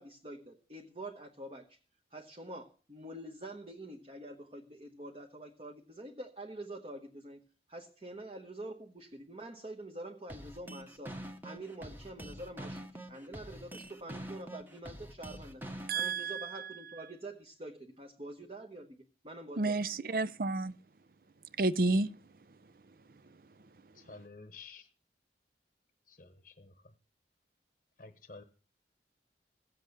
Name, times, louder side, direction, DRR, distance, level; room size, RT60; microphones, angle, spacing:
voice 1, 0.0-1.8 2.1-11.2 11.4-15.7 15.9-20.2, right 1 dB, 30° right, 1.1 m, -46 dB
sound 1, 10.3-16.3, right 1 dB, 10° right, 1.1 m, -45 dB
voice 2, 15.9-16.7 19.6-20.7 21.6-22.1, right 3 dB, 50° right, 0.5 m, -30 dB
voice 3, 23.9-24.9 26.1-26.7 28.0-28.4, left 3 dB, 45° left, 0.9 m, -51 dB
16.0 x 7.7 x 6.6 m
head